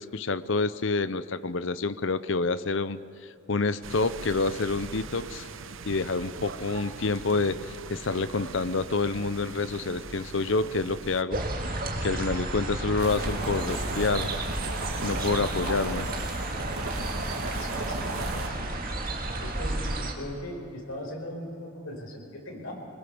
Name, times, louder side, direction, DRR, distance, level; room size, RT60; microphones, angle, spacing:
voice 1, 0.0-3.0 3.5-5.5 5.8-11.4 12.0-14.3 15.0-16.1, left 3 dB, 60° left, 14 dB, 0.7 m, -28 dB
sound 1, 3.8-11.2, right 4 dB, 65° right, 0.8 m, -41 dB
sound 2, 11.3-20.1, right 2 dB, 45° right, 2.0 m, -32 dB
sound 3, 13.0-18.5, right 2 dB, 80° right, 2.4 m, -35 dB
voice 2, 17.2-18.0 18.4-22.8, left 1 dB, 80° left, 0 dB, 5.2 m, -40 dB
22.5 x 21.0 x 7.1 m, 2.5 s
head